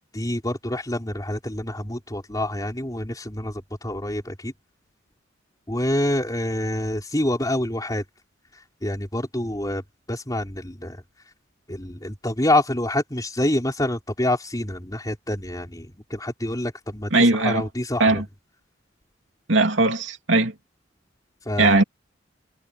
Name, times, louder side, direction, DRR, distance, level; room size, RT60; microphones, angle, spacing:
voice 1, 0.1-4.5 5.7-8.0 8.5-9.8 10.1-11.0 11.7-18.2 21.5-21.8, left 1 dB, 20° left, 4.0 m, -27 dB
voice 2, 17.1-17.6 18.0-18.2 19.5-20.5 21.6-21.8, right 2 dB, 70° right, 2.9 m, -19 dB
head